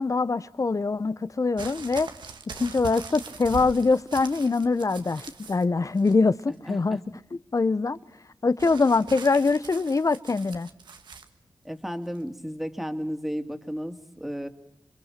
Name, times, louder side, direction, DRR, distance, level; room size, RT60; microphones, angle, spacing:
voice 1, 0.0-2.1 2.6-7.0 7.5-8.0 8.4-10.7, left 3 dB, 45° left, 0.8 m, -23 dB
sound 1, 1.6-5.6 6.0-6.5 8.6-11.3 12.1-12.2, right 5 dB, 90° right, 1.4 m, -42 dB
voice 2, 6.7-7.0 11.6-14.5, equal, ahead, 2.6 m, -33 dB
28.0 x 22.0 x 5.9 m
cardioid pair, 40°, 8 cm